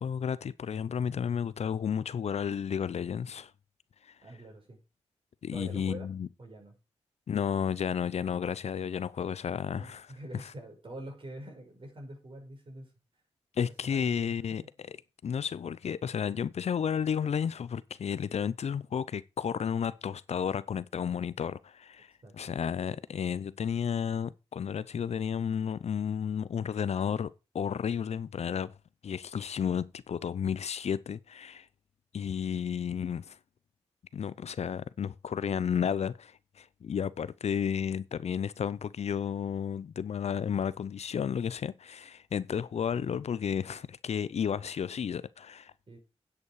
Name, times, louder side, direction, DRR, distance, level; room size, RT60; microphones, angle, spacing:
voice 1, 0.0-3.5 4.0-4.1 5.4-6.3 7.3-10.1 10.3-10.5 13.6-14.6 15.2-28.7 29.0-31.7 32.1-33.4 34.1-45.7, left 7 dB, 70° left, 0.6 m, -32 dB
voice 2, 4.2-4.8 5.5-6.1 6.4-6.7 9.7-12.9 13.6-14.7 22.2-23.0 42.7-43.2 45.9-46.0, right 1 dB, 50° right, 5.6 m, -46 dB
9.7 x 8.2 x 4.8 m
cardioid pair, 55°, 11 cm